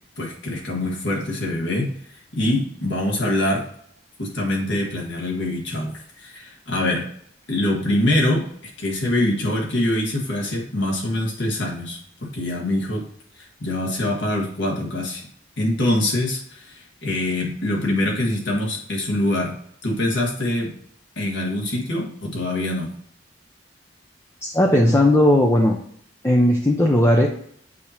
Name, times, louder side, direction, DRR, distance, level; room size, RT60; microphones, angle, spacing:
voice 1, 0.2-1.9 2.3-3.6 4.2-7.1 7.5-8.5 8.8-13.0 13.4-15.2 15.6-19.6 19.8-20.7 21.2-22.9, left 1 dB, 75° left, -2 dB, 1.6 m, -24 dB
voice 2, 24.4-25.8 26.2-27.3, left 1 dB, 15° left, 0 dB, 0.5 m, -16 dB
8.4 x 2.9 x 4.2 m, 0.65 s
head